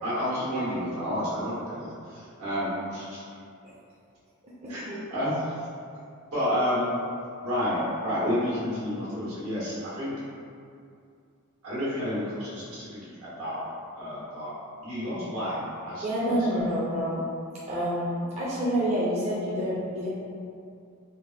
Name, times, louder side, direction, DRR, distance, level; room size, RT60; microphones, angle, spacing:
voice 1, 0.0-3.3 4.7-5.7 6.3-7.0 7.4-10.1 11.6-13.7 13.9-14.5 14.8-16.6, equal, 85° right, -9 dB, 1.2 m, -30 dB
voice 2, 16.0-17.2 17.7-20.1, equal, 30° right, -8 dB, 0.4 m, -28 dB
3.3 x 2.0 x 2.7 m, 2.4 s
head